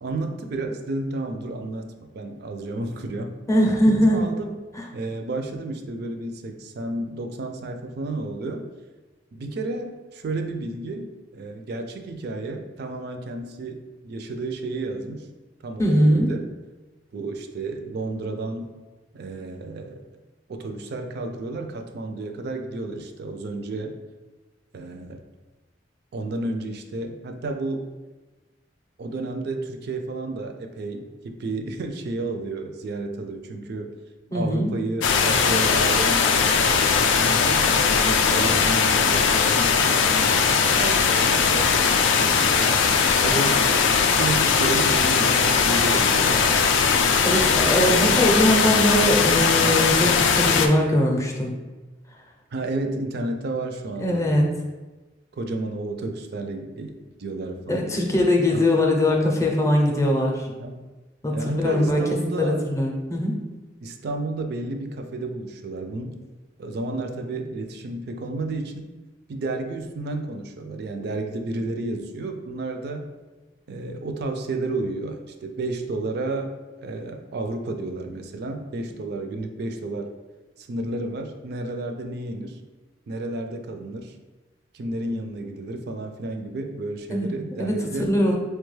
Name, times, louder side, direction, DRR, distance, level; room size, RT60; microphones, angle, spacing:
voice 1, 0.0-3.4 3.9-4.6 4.9-8.7 9.3-15.3 15.6-16.5 17.1-18.7 19.1-20.0 20.5-24.0 24.7-25.2 26.1-27.8 29.0-33.9 34.3-36.3 36.8-39.9 40.8-41.2 41.4-42.6 43.2-43.7 44.2-46.7 47.9-48.3 52.5-54.4 55.4-57.9 58.5-58.7 60.6-60.8 61.3-62.6 63.8-66.2 66.6-68.9 69.3-73.1 73.7-76.5 76.8-80.1 80.6-82.6 83.1-84.1 84.7-88.1, right 2 dB, 60° right, 5 dB, 0.4 m, -31 dB
voice 2, 3.5-4.2 4.7-4.8 15.8-16.3 34.3-34.7 47.2-51.5 54.0-54.4 57.7-60.5 61.2-62.0 62.4-63.3 87.1-87.3 87.6-88.4, left 1 dB, 15° left, 1 dB, 0.5 m, -21 dB
sound 1, 35.0-50.7, left 5 dB, 85° left, 0.4 m, -19 dB
4.5 x 2.2 x 3.1 m, 1.2 s
head